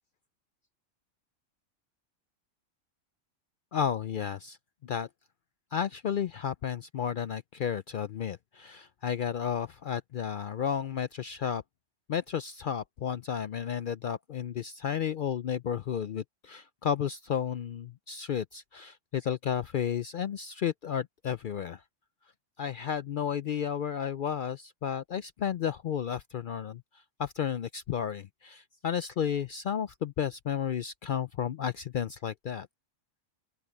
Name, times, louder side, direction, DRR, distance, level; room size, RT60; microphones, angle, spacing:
voice 1, 3.7-4.6 4.8-5.1 5.7-11.6 12.1-21.8 22.6-26.8 27.2-32.7, left 8 dB, 65° left, 0.5 m, -32 dB
open air
omnidirectional pair, 1.3 m